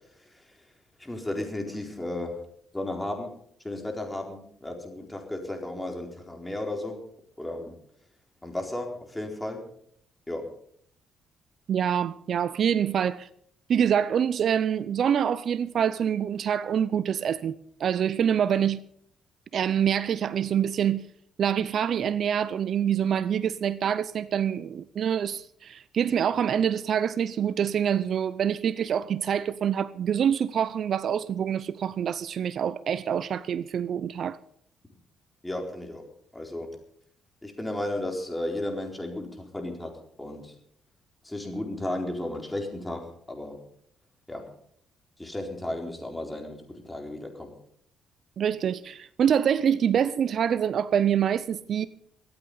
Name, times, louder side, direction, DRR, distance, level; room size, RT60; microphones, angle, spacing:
voice 1, 0.2-0.6 1.0-2.4 2.7-3.3 3.6-7.0 7.4-7.7 8.4-9.6 10.3-10.4 35.4-36.0 36.3-36.7 37.4-39.9 40.2-40.6 41.2-43.6 44.3-44.4 45.2-47.5, left 1 dB, 10° left, 4.3 m, -34 dB
voice 2, 11.7-13.3 13.7-18.8 19.5-21.1 21.4-34.4 48.4-51.9, right 8 dB, 60° right, 0.6 m, -26 dB
24.0 x 8.7 x 5.5 m
cardioid pair, 90°, 0 cm